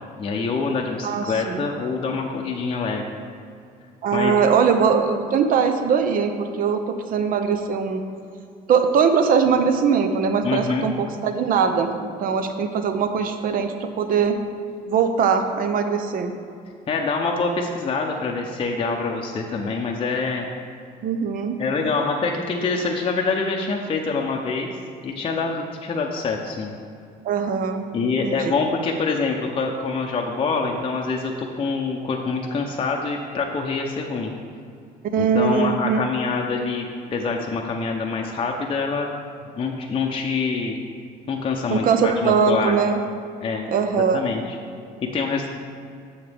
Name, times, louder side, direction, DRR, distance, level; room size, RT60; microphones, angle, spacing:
voice 1, 0.2-3.1 4.1-4.3 10.4-10.9 16.9-20.5 21.6-24.7 25.0-26.7 27.9-34.3 35.2-39.1 39.6-40.8 41.3-42.7 43.4-43.7 44.1-44.6 45.1-45.5, left 4 dB, 30° left, 0 dB, 0.6 m, -25 dB
voice 2, 1.0-1.7 4.0-8.0 8.7-14.4 14.9-16.3 21.0-21.6 27.2-28.5 35.1-36.0 41.7-43.0 43.7-44.2, right 6 dB, 55° right, 7 dB, 0.7 m, -21 dB
7.2 x 6.9 x 3.4 m, 2.4 s
cardioid pair, 110°, 17 cm